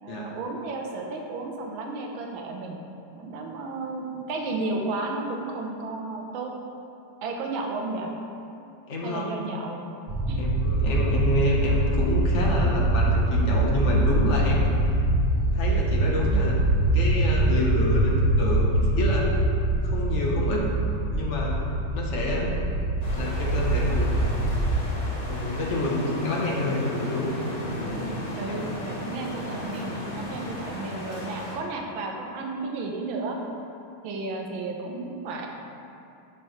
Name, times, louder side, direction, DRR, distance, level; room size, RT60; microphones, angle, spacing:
voice 1, 0.0-2.8 3.2-6.5 7.2-8.1 9.0-9.8 10.3-10.4 28.3-33.4 34.0-35.5, right 3 dB, 75° right, 1 dB, 1.5 m, -33 dB
voice 2, 8.9-9.2 10.3-14.7 15.5-16.6 16.9-18.1 18.4-19.2 19.8-20.6 21.1-21.6 21.9-22.5 23.1-24.2 25.2-27.3, left 2 dB, 50° left, -3 dB, 0.9 m, -28 dB
sound 1, 10.1-24.7, right 1 dB, 55° right, 1.5 m, -24 dB
sound 2, 23.0-31.6, left 1 dB, 25° left, 1.0 m, -35 dB
11.5 x 4.5 x 3.2 m, 2.6 s
omnidirectional pair, 2.3 m